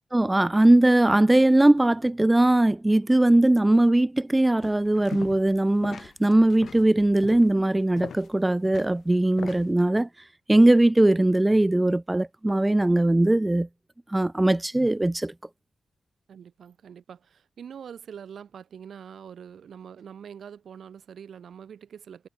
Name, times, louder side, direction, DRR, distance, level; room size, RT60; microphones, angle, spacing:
voice 1, 0.1-10.1 10.5-13.7 14.1-15.3, right 1 dB, 15° right, 0.3 m, -20 dB
sound 1, 4.6-5.6 5.8-9.7, left 7 dB, 75° left, 1.1 m, -41 dB
voice 2, 16.3-22.3, right 8 dB, 75° right, 0.9 m, -44 dB
cardioid pair, 60°, 0 cm